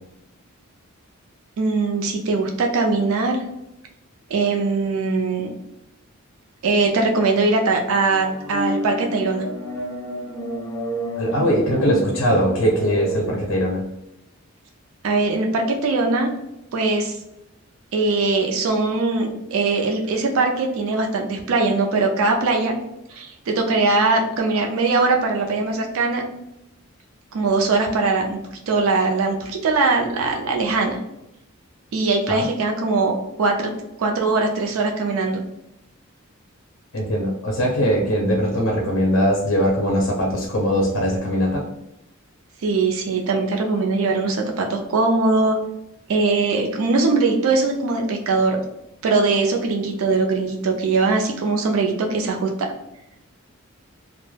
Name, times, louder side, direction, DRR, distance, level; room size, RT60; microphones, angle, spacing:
voice 1, 1.6-3.4 4.3-5.5 6.6-9.5 15.0-16.3 16.7-17.2 17.9-22.8 23.1-26.2 27.3-28.4 28.7-31.0 31.9-33.7 34.0-35.4 42.6-45.6 46.1-48.6 49.0-52.7, right 3 dB, 70° right, 2 dB, 0.4 m, -21 dB
sound 1, 8.1-13.5, right 1 dB, 15° left, 0.4 m, -30 dB
voice 2, 11.2-13.8 32.3-32.5 36.9-41.7, equal, 65° left, 0 dB, 0.5 m, -21 dB
2.2 x 2.0 x 3.1 m, 0.87 s
head